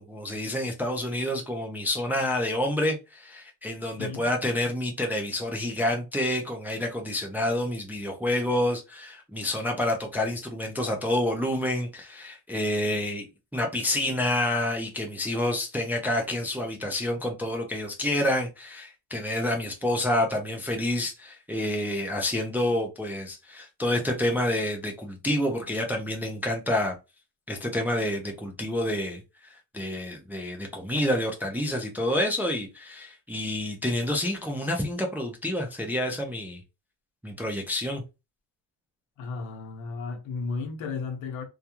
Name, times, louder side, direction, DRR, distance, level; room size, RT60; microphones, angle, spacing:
voice 1, 0.0-13.3 13.5-26.9 27.5-36.6 37.2-38.0, left 1 dB, 5° right, 0.3 m, -28 dB
voice 2, 4.0-4.3 39.2-41.4, left 4 dB, 70° left, 0.9 m, -34 dB
2.3 x 2.3 x 2.8 m
cardioid pair, 120°, 49 cm